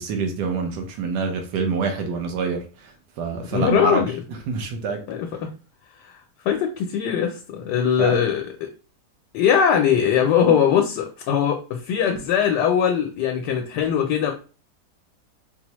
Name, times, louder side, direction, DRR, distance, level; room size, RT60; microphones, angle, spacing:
voice 1, 0.0-2.6 3.2-4.0 4.5-5.0 8.0-8.2, right 5 dB, 85° right, 1.3 m, -26 dB
voice 2, 3.5-4.2 5.1-5.5 6.0-8.7 9.3-14.3, left 8 dB, 90° left, 1.2 m, -21 dB
4.4 x 2.0 x 2.9 m
omnidirectional pair, 1.8 m